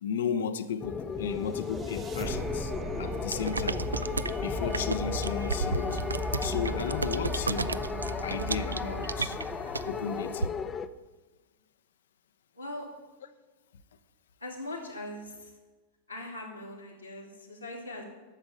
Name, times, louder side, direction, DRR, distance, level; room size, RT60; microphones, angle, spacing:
voice 1, 0.0-3.9 4.4-6.0 6.4-7.9 8.2-9.4 9.9-10.6, left 7 dB, 60° left, 0.8 m, -34 dB
sound 1, 0.8-10.9, left 6 dB, 20° left, 0.6 m, -35 dB
sound 2, 1.2-10.3, right 1 dB, 25° right, 1.0 m, -37 dB
sound 3, 3.3-10.5, right 3 dB, 80° right, 0.3 m, -34 dB
voice 2, 12.5-12.9 14.4-15.5 16.1-18.0, left 1 dB, 90° left, 2.6 m, -40 dB
12.0 x 7.2 x 7.8 m
figure-of-eight pair, 90°, 0 cm